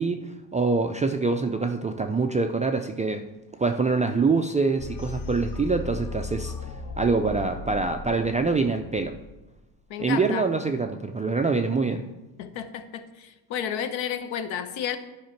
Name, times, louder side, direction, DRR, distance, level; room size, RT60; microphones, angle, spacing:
voice 1, 0.0-3.2 3.6-6.7 7.0-9.1 10.0-12.1, right 4 dB, 15° right, 5 dB, 0.3 m, -25 dB
sound 1, 4.8-9.7, left 3 dB, 40° left, 0.9 m, -36 dB
voice 2, 9.9-10.5 12.4-15.0, left 9 dB, 65° left, 10 dB, 1.0 m, -31 dB
10.0 x 4.9 x 4.5 m, 1.0 s
supercardioid pair, 90°, 50 cm